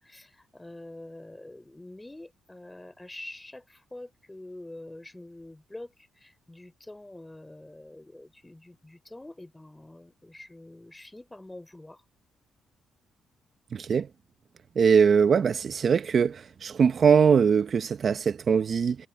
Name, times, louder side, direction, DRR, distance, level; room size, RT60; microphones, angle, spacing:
voice 1, 0.0-12.0, left 1 dB, 10° left, 4.5 m, -46 dB
voice 2, 14.8-16.4 16.6-19.0, right 6 dB, 50° right, 0.8 m, -21 dB
cardioid pair, 90°, 0 cm